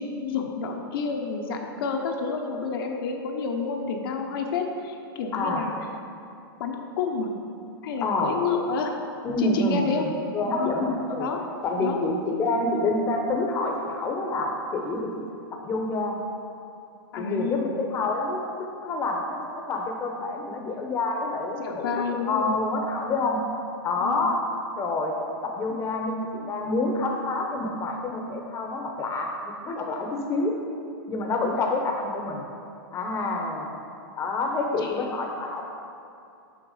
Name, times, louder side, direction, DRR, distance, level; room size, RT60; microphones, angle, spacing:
voice 1, 0.0-5.7 6.6-7.3 7.8-8.9 9.4-10.1 10.6-10.7 11.2-11.4 11.8-12.0 17.1-17.7 21.5-22.6 24.0-24.4 25.7-25.8 31.4-31.6 34.8-35.1, left 5 dB, 70° left, 2 dB, 0.9 m, -29 dB
voice 2, 5.3-5.7 8.0-8.4 9.2-10.1 10.3-11.3 11.6-15.3 15.5-16.2 17.2-18.4 18.8-19.4 19.7-23.4 23.8-24.4 24.8-25.1 25.4-30.5 31.1-32.4 32.9-33.7 34.2-35.6, left 2 dB, 20° left, 2 dB, 0.8 m, -27 dB
6.4 x 5.9 x 5.0 m, 2.5 s
hypercardioid pair, 140°, 12 cm